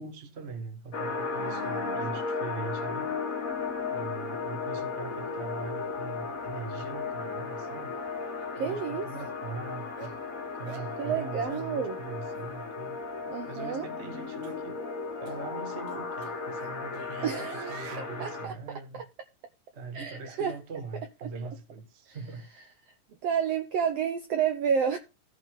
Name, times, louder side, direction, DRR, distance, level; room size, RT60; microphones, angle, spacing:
voice 1, 0.0-3.1 3.9-8.0 8.6-10.2 10.5-13.0 13.5-14.8 15.2-19.0 19.7-22.5, right 4 dB, 50° right, 0.8 m, -41 dB
sound 1, 0.9-18.5, left 4 dB, 45° left, 1.0 m, -35 dB
voice 2, 1.4-2.0 8.5-9.1 11.0-12.0 13.3-13.9 17.2-18.5 19.9-20.6 21.2-21.3 23.2-25.0, right 7 dB, 80° right, 1.4 m, -30 dB
sound 2, 8.4-8.5 9.1-9.3 10.0-10.2 10.7-10.9 11.5-11.7 12.3-12.5 13.4-13.7 14.4-14.6 15.3-15.4 15.9-18.1, right 7 dB, 65° right, 1.9 m, -46 dB
15.0 x 5.6 x 3.7 m
omnidirectional pair, 4.0 m